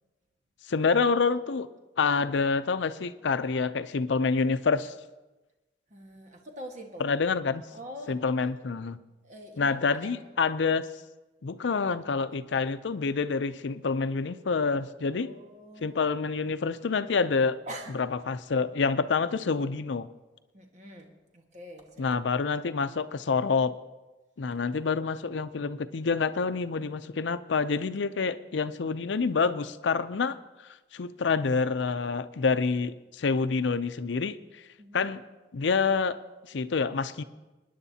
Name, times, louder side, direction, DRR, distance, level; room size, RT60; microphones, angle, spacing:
voice 1, 0.7-1.7 2.0-4.9 7.0-7.6 8.1-9.0 9.6-10.9 11.4-15.3 15.8-17.6 18.0-20.1 22.0-23.7 24.4-30.4 30.9-34.6 34.9-35.2 35.5-36.2 36.5-37.2, left 4 dB, 80° left, 12 dB, 0.5 m, -27 dB
voice 2, 5.9-7.2 7.7-8.2 9.2-10.3 15.1-16.1 17.7-18.0 20.5-22.4 34.8-35.1, equal, 40° right, 2 dB, 1.5 m, -45 dB
25.0 x 10.0 x 2.8 m, 1.1 s
head